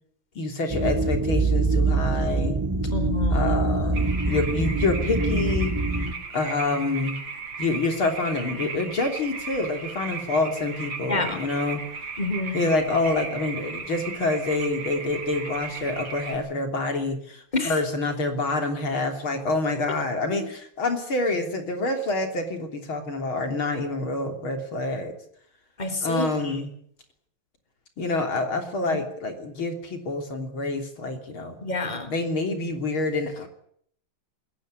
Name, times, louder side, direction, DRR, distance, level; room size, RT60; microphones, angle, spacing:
voice 1, 0.4-2.6 3.3-5.8 6.3-7.2 7.6-11.9 12.5-25.1 26.0-26.7 28.0-31.6 32.1-33.5, left 2 dB, 70° left, 5 dB, 4.1 m, -27 dB
sound 1, 0.7-6.1, right 3 dB, 10° right, 1.6 m, -24 dB
voice 2, 2.9-3.4 11.1-11.4 12.2-12.6 17.5-17.7 20.3-20.4 25.8-26.5 31.6-32.1, left 2 dB, 20° left, 7 dB, 3.7 m, -28 dB
sound 2, 3.9-16.4, right 5 dB, 60° right, 4.4 m, -36 dB
21.0 x 17.5 x 9.6 m, 0.65 s
omnidirectional pair, 2.3 m